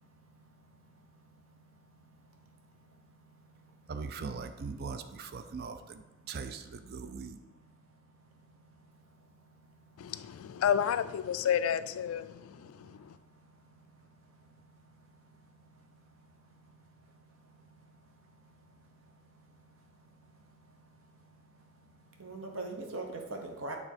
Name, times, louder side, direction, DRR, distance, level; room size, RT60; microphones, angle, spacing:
voice 1, 0.1-3.7 8.3-9.3 9.6-10.5 12.3-16.7 17.0-23.8, right 2 dB, 70° right, 0.9 m, -49 dB
voice 2, 3.9-7.4, right 5 dB, 50° right, 0.4 m, -40 dB
voice 3, 10.0-13.1, left 9 dB, 85° left, 0.3 m, -31 dB
7.0 x 3.4 x 4.4 m
head